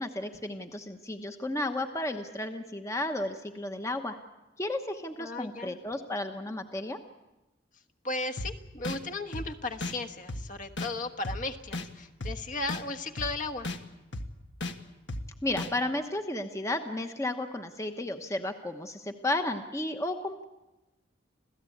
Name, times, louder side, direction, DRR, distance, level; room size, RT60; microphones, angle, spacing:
voice 1, 0.0-4.2 4.6-7.0 15.4-20.4, left 1 dB, 15° left, 6 dB, 1.0 m, -33 dB
voice 2, 5.2-5.8 8.0-13.7, left 2 dB, 45° left, 8 dB, 1.3 m, -35 dB
sound 1, 8.4-8.5 8.8-9.0 9.3-9.5 9.8-9.9 10.3-10.4 10.8-10.9 11.2-11.4 11.7-11.9 12.2-12.3 12.7-12.8 13.2-13.3 13.6-13.8 14.1-14.3 14.6-14.7 15.1-15.2 15.6-15.7, left 2 dB, 75° left, 1.5 m, -34 dB
27.0 x 16.5 x 8.6 m, 1.0 s
head